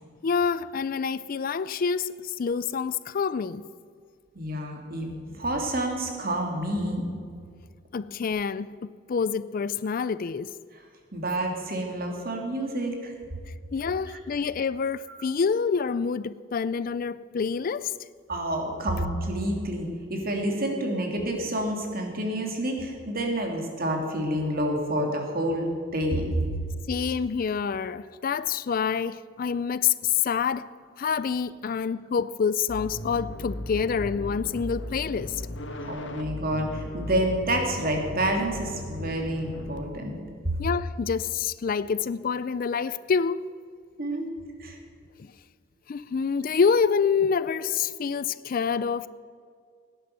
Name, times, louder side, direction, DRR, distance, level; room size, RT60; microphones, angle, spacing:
voice 1, 0.2-3.6 7.9-10.5 13.7-17.9 26.9-35.4 40.6-43.4 45.2-45.3 45.9-49.1, left 6 dB, 45° left, 0.4 m, -27 dB
voice 2, 4.3-7.0 11.1-13.1 15.1-15.2 18.3-26.3 35.7-40.2 44.0-44.3 44.6-44.8, right 1 dB, 50° right, 2.8 m, -29 dB
sound 1, 32.7-39.8, left 1 dB, 65° left, 1.2 m, -37 dB
17.5 x 10.5 x 6.6 m
head